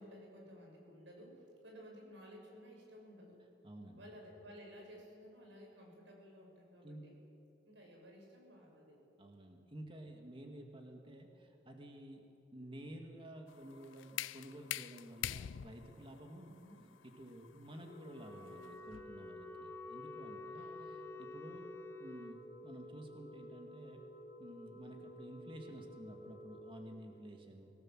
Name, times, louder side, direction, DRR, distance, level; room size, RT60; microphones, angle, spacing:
voice 1, 0.0-3.4 4.0-7.2 7.6-9.0 16.4-16.8 20.5-21.2, equal, 70° right, 0 dB, 6.5 m, -55 dB
voice 2, 3.6-4.0 6.8-7.1 9.2-12.3 12.5-16.5 17.0-21.7 22.0-24.0 24.4-27.7, right 1 dB, 25° right, 3 dB, 2.2 m, -52 dB
sound 1, 13.5-19.3, left 12 dB, 75° left, 0.4 m, -45 dB
sound 2, 17.8-26.8, equal, 55° left, 5.4 m, -53 dB
Wind instrument woodwind instrument, 18.1-22.4, left 3 dB, 10° left, 0.8 m, -50 dB
24.5 x 17.5 x 7.6 m, 2.7 s
head